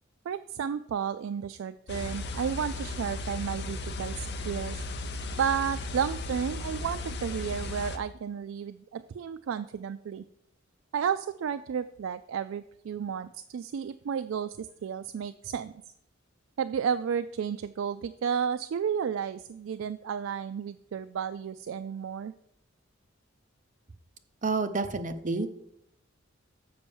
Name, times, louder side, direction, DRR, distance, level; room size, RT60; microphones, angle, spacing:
voice 1, 0.3-4.8 5.4-10.2 10.9-15.7 16.6-22.3, right 7 dB, 80° right, 11 dB, 0.3 m, -32 dB
sound 1, 1.9-8.0, left 2 dB, 60° left, 0.8 m, -36 dB
voice 2, 24.4-25.5, right 3 dB, 40° right, 9 dB, 0.7 m, -29 dB
6.9 x 5.4 x 7.0 m, 0.73 s
head